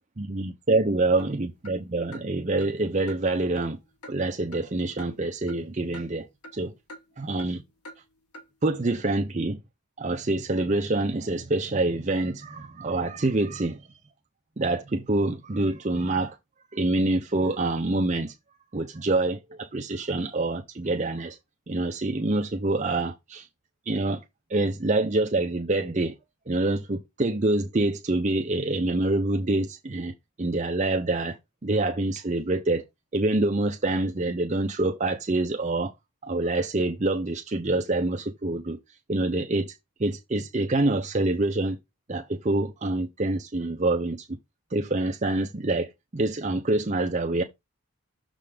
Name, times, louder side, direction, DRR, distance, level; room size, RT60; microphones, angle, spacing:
voice 1, 0.2-3.8 4.1-6.3 6.5-6.7 7.2-7.6 8.6-9.6 10.0-13.9 14.6-16.4 16.7-18.3 18.7-21.4 21.7-23.5 23.9-24.2 24.5-26.1 26.5-30.1 30.4-31.4 31.6-32.8 33.1-35.9 36.2-38.8 39.1-39.7 40.0-41.8 42.1-44.3 44.7-47.4, right 2 dB, 30° right, 0.6 m, -26 dB
sound 1, 1.2-1.3 1.6-1.8 2.1-2.3 2.6-2.7 3.1-3.2 3.6-3.7 4.0-4.2 4.5-4.7 5.0-5.1 5.5-5.6 5.9-6.0 6.4-6.6 6.9-7.0 7.4-7.5 7.8-8.0 8.3-8.5, equal, 85° left, 1.6 m, -44 dB
6.8 x 3.8 x 5.0 m
head